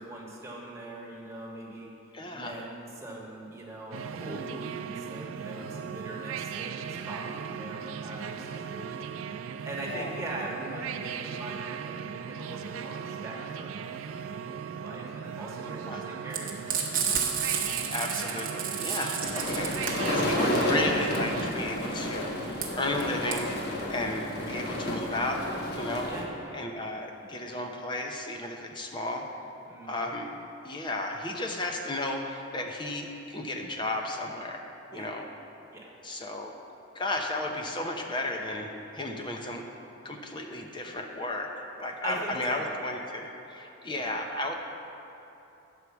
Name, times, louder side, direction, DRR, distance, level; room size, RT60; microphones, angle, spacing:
voice 1, 0.0-1.9 2.3-16.0 16.2-16.8 26.1-26.3 29.7-30.1 34.9-35.1 35.7-35.9 42.0-42.7 43.9-44.2, right 1 dB, 15° right, -4 dB, 1.3 m, -41 dB
voice 2, 2.1-2.6 9.9-10.2 15.9-16.2 17.7-23.6 23.9-25.4 25.8-26.1 26.5-29.2 29.8-30.3 30.6-34.7 34.9-35.2 36.0-36.5 36.9-39.7 40.0-41.5 41.8-44.5, left 2 dB, 25° left, 2 dB, 0.7 m, -34 dB
sound 1, 3.9-21.5, right 7 dB, 80° right, 0.4 m, -38 dB
Frying (food), 16.3-25.1, right 7 dB, 45° right, 1.0 m, -32 dB
sound 2, 19.2-26.2, left 1 dB, 50° left, 1.0 m, -31 dB
9.3 x 4.8 x 6.9 m, 2.9 s
head